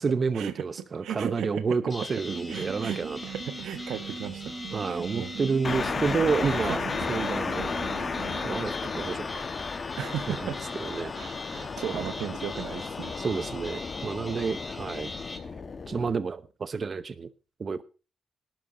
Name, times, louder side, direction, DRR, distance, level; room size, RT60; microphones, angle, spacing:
voice 1, 0.0-3.2 4.7-6.8 7.1-7.7 8.4-9.8 10.3-10.5 10.8-11.1 11.9-12.1 13.2-15.1 15.9-17.3 17.6-17.8, right 5 dB, 40° right, 0.9 m, -30 dB
voice 2, 1.0-1.6 2.5-3.0 3.3-5.4 5.9-6.0 6.4-6.5 10.0-10.6 11.1-13.1, right 10 dB, 80° right, 1.3 m, -36 dB
sound 1, 1.9-15.4, left 2 dB, 20° left, 3.4 m, -42 dB
sound 2, 2.3-8.6, right 5 dB, 60° right, 2.8 m, -40 dB
sound 3, 5.6-16.1, left 5 dB, 40° left, 1.4 m, -34 dB
19.0 x 12.0 x 2.8 m
cardioid pair, 85°, 0 cm